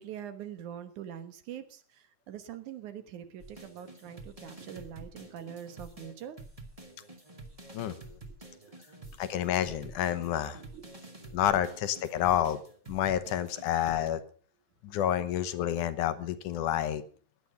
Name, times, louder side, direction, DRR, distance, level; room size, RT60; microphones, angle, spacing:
voice 1, 0.0-6.4 8.3-8.4 8.6-8.7 9.0-9.1 9.8-10.0 10.3-10.9 11.1-11.4, right 9 dB, 75° right, 10 dB, 2.7 m, -44 dB
sound 1, 3.4-14.1, right 2 dB, 15° right, 1.8 m, -49 dB
voice 2, 9.2-10.6 11.3-12.6 12.9-14.2 14.8-17.0, left 11 dB, 80° left, 12 dB, 2.5 m, -29 dB
17.0 x 11.0 x 5.6 m, 0.42 s
omnidirectional pair, 3.5 m